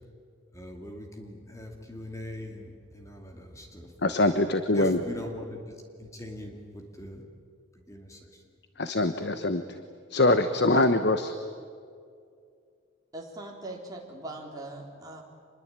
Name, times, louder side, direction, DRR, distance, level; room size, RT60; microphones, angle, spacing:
voice 1, 0.5-3.9 4.7-7.3 7.9-8.4, left 1 dB, 15° left, 3 dB, 2.4 m, -41 dB
voice 2, 4.0-5.0 8.8-9.6 10.1-11.3, left 2 dB, 55° left, 10 dB, 1.1 m, -23 dB
voice 3, 13.1-15.2, right 2 dB, 20° right, -1 dB, 3.9 m, -40 dB
26.5 x 21.5 x 9.0 m, 2.3 s
head